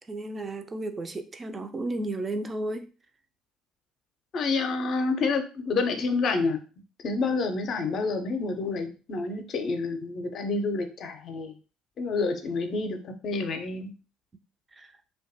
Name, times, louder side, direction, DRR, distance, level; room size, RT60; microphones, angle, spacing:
voice 1, 0.1-2.9 14.7-14.9, right 2 dB, 30° right, 0.4 m, -33 dB
voice 2, 4.3-6.6 7.0-11.5 12.0-13.0 13.2-13.9, left 3 dB, 50° left, 0.5 m, -28 dB
2.6 x 2.2 x 2.7 m
hypercardioid pair, 55°, 0 cm